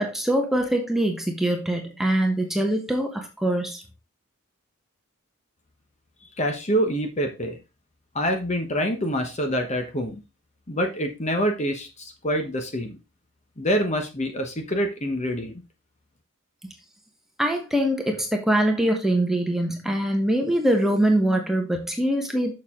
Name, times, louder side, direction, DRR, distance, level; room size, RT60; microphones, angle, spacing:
voice 1, 0.0-3.8 17.4-22.5, right 1 dB, ahead, 2 dB, 1.2 m, -23 dB
voice 2, 6.4-7.6 8.1-10.2 10.7-13.0 13.6-15.5, equal, 35° left, 5 dB, 1.1 m, -26 dB
6.6 x 6.5 x 3.7 m, 0.28 s
head